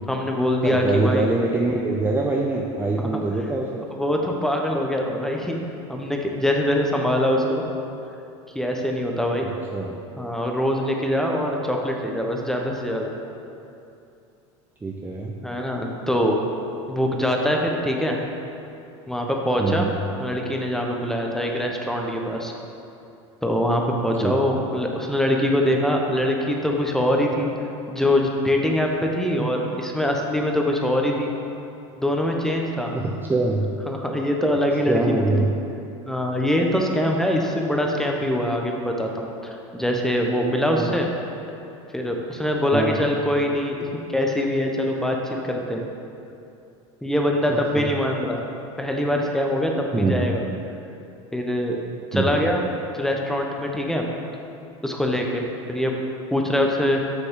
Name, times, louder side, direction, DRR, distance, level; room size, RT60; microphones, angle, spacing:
voice 1, 0.1-1.3 3.0-3.2 3.9-5.6 5.9-7.6 8.5-9.4 10.2-13.1 15.4-16.4 16.9-18.2 19.1-19.9 20.2-22.5 23.4-27.5 27.9-31.3 32.0-32.9 33.9-35.5 36.1-41.1 41.9-45.8 47.0-48.4 48.8-50.4 51.3-52.6 52.9-54.0 54.8-55.4 55.7-56.0 56.3-57.0, left 1 dB, 5° left, 1 dB, 1.0 m, -23 dB
voice 2, 0.6-3.8 9.7-10.0 14.8-15.3 19.6-19.9 24.2-24.6 29.4-29.5 32.9-33.7 34.9-35.5 40.7-41.0 42.7-43.1 47.5-47.9 49.9-50.3 52.1-52.5, right 2 dB, 15° right, -1 dB, 0.6 m, -24 dB
9.5 x 6.7 x 3.8 m, 2.7 s
supercardioid pair, 105°, 15 cm